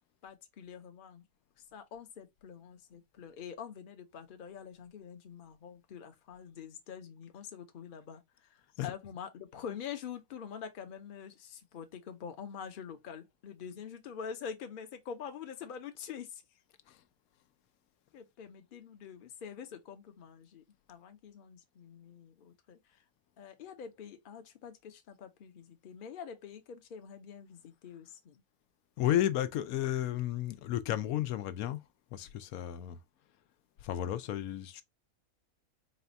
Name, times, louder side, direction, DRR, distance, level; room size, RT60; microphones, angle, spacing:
voice 1, 0.2-1.2 1.7-8.5 8.8-16.4 18.1-23.0 23.4-28.4, left 7 dB, 45° left, 0.8 m, -46 dB
voice 2, 29.0-31.8 32.1-33.0 33.8-34.8, left 12 dB, 85° left, 1.0 m, -33 dB
4.2 x 2.3 x 3.9 m
omnidirectional pair, 1.5 m